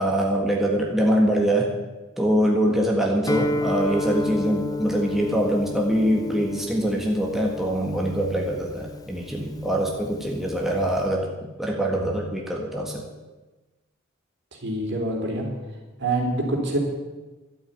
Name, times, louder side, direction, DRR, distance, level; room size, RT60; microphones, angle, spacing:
voice 1, 0.0-1.7 2.2-13.0, right 1 dB, ahead, -1 dB, 1.7 m, -24 dB
Guitar, 3.3-11.0, left 2 dB, 20° left, 0.7 m, -31 dB
voice 2, 14.6-15.5 16.0-16.8, right 2 dB, 60° right, 0 dB, 3.8 m, -25 dB
12.5 x 8.7 x 9.5 m, 1.2 s
head